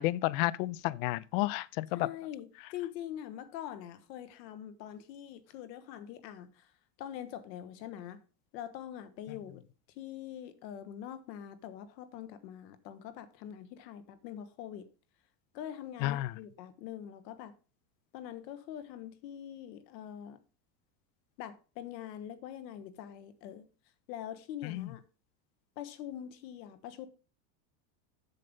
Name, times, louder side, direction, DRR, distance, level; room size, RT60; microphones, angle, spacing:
voice 1, 0.0-2.1 9.3-9.4 16.0-16.3 24.6-24.9, left 17 dB, 55° left, 0.5 m, -31 dB
voice 2, 1.9-6.7 7.0-8.2 8.5-9.6 10.0-14.9 15.5-17.5 18.1-20.4 21.4-23.7 24.1-25.0 25.8-27.1, left 10 dB, 80° left, 1.5 m, -44 dB
7.7 x 6.7 x 5.4 m
supercardioid pair, 150°, 50 cm